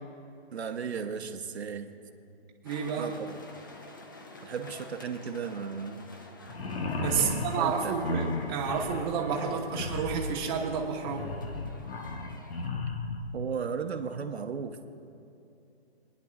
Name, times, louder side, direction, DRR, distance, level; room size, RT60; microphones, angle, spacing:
voice 1, 0.5-1.9 3.0-3.4 4.4-6.0 7.2-7.9 13.3-14.9, right 6 dB, 85° right, 5 dB, 1.1 m, -35 dB
sound 1, 2.6-12.7, left 2 dB, 20° left, 0.4 m, -50 dB
voice 2, 2.6-3.1 7.0-11.3, right 6 dB, 20° right, -2 dB, 1.1 m, -30 dB
sound 2, 6.5-13.3, left 3 dB, 70° left, 1.2 m, -35 dB
28.5 x 10.0 x 2.4 m, 2.7 s
hypercardioid pair, 160°, 32 cm